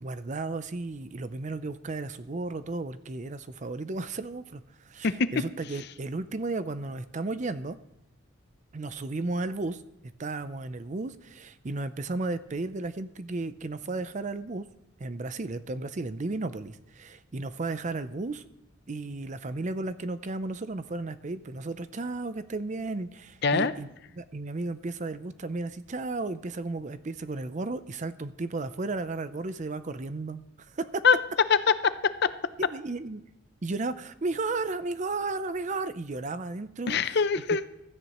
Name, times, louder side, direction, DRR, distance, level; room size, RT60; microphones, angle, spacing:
voice 1, 0.0-7.8 8.7-9.8 10.2-14.7 15.0-18.4 18.9-23.9 24.2-31.0 32.7-33.2 33.6-37.0, right 3 dB, 40° right, 13 dB, 0.5 m, -34 dB
voice 2, 5.0-5.4 23.4-23.7 31.0-31.2 31.5-32.3 36.9-37.6, left 5 dB, 55° left, 13 dB, 0.6 m, -23 dB
16.0 x 13.0 x 3.0 m, 0.86 s
head